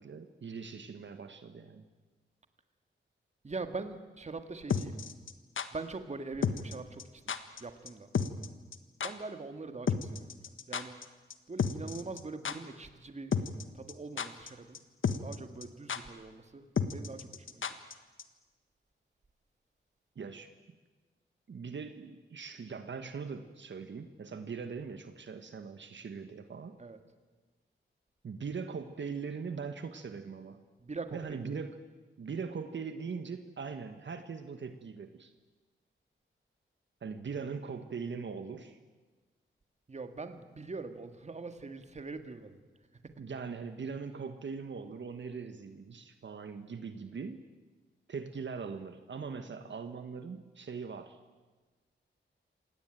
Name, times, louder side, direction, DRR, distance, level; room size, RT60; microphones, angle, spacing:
voice 1, 0.0-1.9 20.1-20.5 21.5-26.8 28.2-30.6 31.1-31.8 32.2-35.3 37.0-38.8 43.2-47.4 48.1-51.2, right 5 dB, 65° right, 8 dB, 1.5 m, -41 dB
voice 2, 3.4-5.0 5.7-7.4 7.6-8.1 9.0-11.0 11.5-13.3 13.7-14.8 15.2-17.8 26.8-27.0 30.8-31.6 39.9-42.6 43.0-43.1, right 3 dB, 35° right, 8 dB, 1.9 m, -43 dB
sound 1, 4.7-5.7 6.4-6.7 7.0-7.1 7.3-7.6 7.9-8.5 8.7-8.8 9.0-9.1 9.9-11.0 11.3-11.4 11.6-12.2 12.4-12.6 13.3-13.6 13.9-14.5 14.7-14.8 15.0-15.4 15.6-15.7 15.9-16.0 16.8-17.9 18.2-18.3, left 6 dB, 70° left, 1.5 m, -31 dB
27.0 x 19.0 x 9.1 m, 1.3 s
wide cardioid pair, 125°, 21 cm